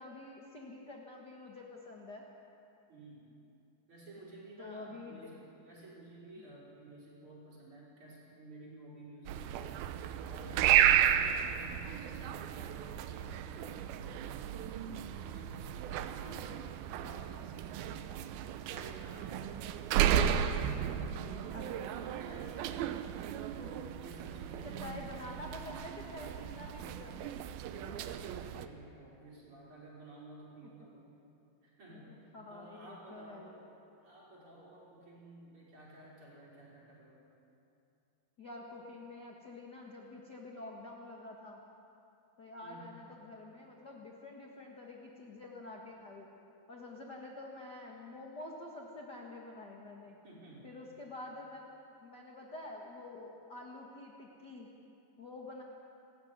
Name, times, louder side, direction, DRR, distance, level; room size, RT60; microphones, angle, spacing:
voice 1, 0.0-2.2 4.6-5.3 16.2-16.4 21.5-21.6 24.6-27.4 31.9-33.5 38.4-41.6 42.4-46.3 46.7-50.2 50.6-51.7 52.0-54.7 55.2-55.6, left 2 dB, 60° left, -1 dB, 1.0 m, -48 dB
voice 2, 2.9-3.3 3.9-9.8 10.3-14.7 15.0-18.1 18.6-19.9 20.3-22.8 23.5-25.9 27.7-31.1 31.6-33.6 34.0-37.2 42.6-43.0 50.2-50.8, right 1 dB, 30° right, -5 dB, 5.6 m, -53 dB
sound 1, 9.3-28.7, right 10 dB, 75° right, 2.3 m, -33 dB
21.0 x 14.0 x 9.6 m, 2.8 s
omnidirectional pair, 4.8 m